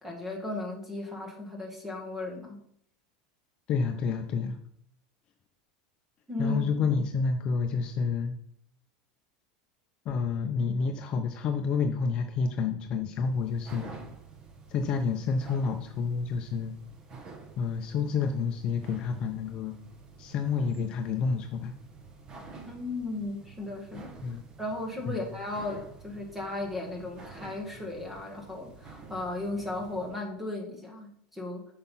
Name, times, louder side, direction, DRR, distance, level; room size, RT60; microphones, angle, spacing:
voice 1, 0.0-2.6 6.3-6.9 22.7-25.8 26.0-31.7, left 2 dB, 5° right, 1 dB, 2.0 m, -36 dB
voice 2, 3.7-4.6 6.4-8.4 10.0-13.9 14.7-16.7 17.6-19.7 20.2-21.7 24.2-24.4 25.1-25.2, left 5 dB, 35° left, 5 dB, 0.7 m, -29 dB
sound 1, 13.1-30.3, right 4 dB, 25° right, 1.2 m, -49 dB
8.6 x 5.7 x 5.7 m, 0.66 s
supercardioid pair, 160°, 3 cm